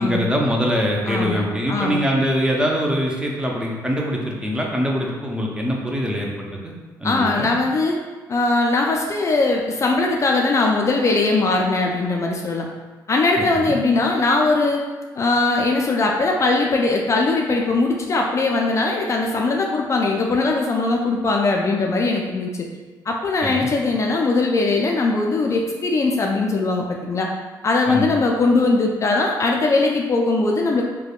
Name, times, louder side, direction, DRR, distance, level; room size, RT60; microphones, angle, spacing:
voice 1, 0.0-6.3 6.6-6.7 7.0-7.5 13.4-13.8 23.4-23.7 27.9-28.1, equal, 10° right, -1 dB, 0.6 m, -23 dB
voice 2, 1.1-1.4 1.7-2.0 7.0-8.0 8.3-12.6 13.1-14.8 15.1-22.7 23.1-27.3 27.6-30.8, left 3 dB, 40° left, 0 dB, 0.3 m, -20 dB
3.4 x 2.1 x 2.3 m, 1.3 s
supercardioid pair, 65°, 8 cm